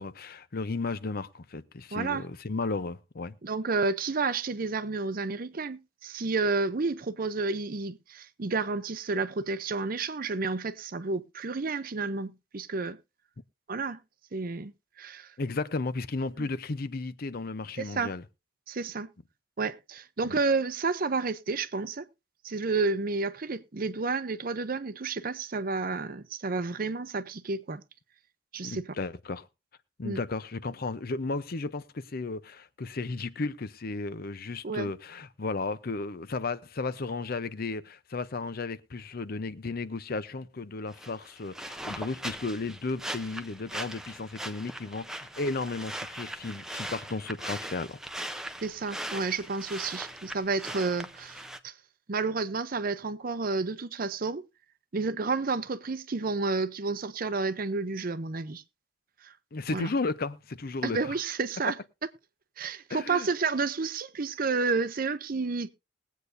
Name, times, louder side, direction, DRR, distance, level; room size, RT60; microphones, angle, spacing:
voice 1, 0.0-3.4 15.4-18.2 20.3-20.4 28.6-29.5 30.0-48.0 48.3-48.4 59.5-61.2 62.9-63.3, left 3 dB, 50° left, 0.6 m, -34 dB
voice 2, 1.9-2.2 3.4-13.0 13.7-14.0 14.3-14.7 15.0-15.3 17.8-18.1 18.7-19.1 19.6-22.1 22.4-27.8 28.5-28.9 30.0-30.2 34.6-34.9 48.6-51.7 52.1-54.5 54.9-58.6 59.2-59.3 59.7-59.9 60.8-61.8 62.6-65.7, right 4 dB, 50° right, 0.7 m, -30 dB
sound 1, 40.9-51.6, right 1 dB, 5° right, 0.7 m, -40 dB
21.0 x 8.2 x 2.6 m
head